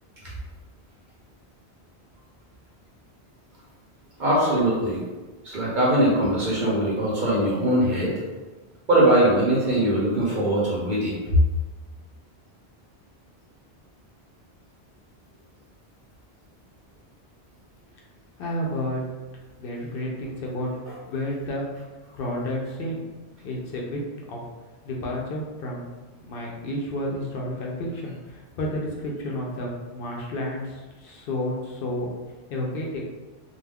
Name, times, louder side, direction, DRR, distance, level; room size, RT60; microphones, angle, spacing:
voice 1, 4.2-5.0 5.4-8.1 8.9-11.4, right 1 dB, 50° right, -6 dB, 0.7 m, -21 dB
voice 2, 18.4-19.0 19.6-20.7 21.1-21.7 22.1-23.1 23.4-24.0 24.3-24.4 24.8-25.9 26.2-32.1 32.5-33.0, left 1 dB, 65° left, -1 dB, 0.7 m, -31 dB
2.3 x 2.2 x 3.3 m, 1.2 s
omnidirectional pair, 1.1 m